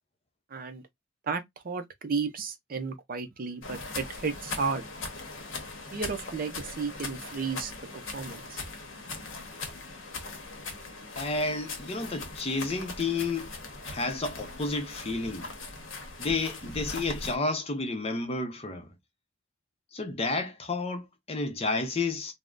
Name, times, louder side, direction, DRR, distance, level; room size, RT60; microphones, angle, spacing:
voice 1, 0.5-0.8 1.3-4.8 5.9-8.6, right 5 dB, 45° right, 0.5 m, -33 dB
sound 1, 3.6-17.4, left 3 dB, 85° left, 0.8 m, -40 dB
voice 2, 11.2-13.5 13.8-15.5 16.2-18.9 19.9-22.3, left 3 dB, 30° left, 0.6 m, -31 dB
3.5 x 2.0 x 2.4 m
head